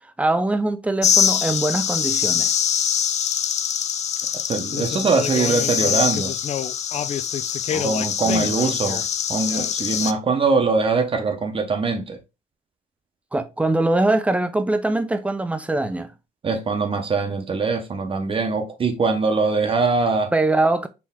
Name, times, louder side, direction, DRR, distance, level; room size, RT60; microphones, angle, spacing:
voice 1, 0.2-2.5 7.7-8.5 13.3-16.1 20.3-20.9, right 2 dB, 10° right, 0.6 m, -22 dB
sound 1, 1.0-10.1, left 8 dB, 40° left, 0.5 m, -23 dB
voice 2, 4.4-6.3 7.8-9.0 9.3-12.2 16.4-20.3, right 4 dB, 30° right, 0.9 m, -22 dB
4.5 x 3.0 x 3.6 m
cardioid pair, 110°, 17 cm